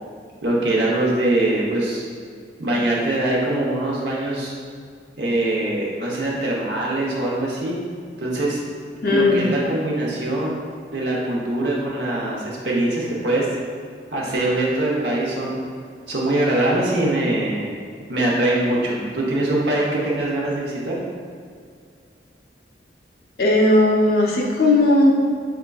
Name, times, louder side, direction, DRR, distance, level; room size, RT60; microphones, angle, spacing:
voice 1, 0.4-2.0 2.6-4.5 5.2-7.8 8.2-8.6 9.1-10.6 10.9-13.5 14.1-15.6 16.1-17.7 18.1-21.0, right 1 dB, 65° right, -4 dB, 0.9 m, -22 dB
voice 2, 9.0-9.4 23.4-25.1, left 2 dB, 55° left, -2 dB, 0.7 m, -16 dB
5.6 x 3.7 x 2.3 m, 2.2 s
head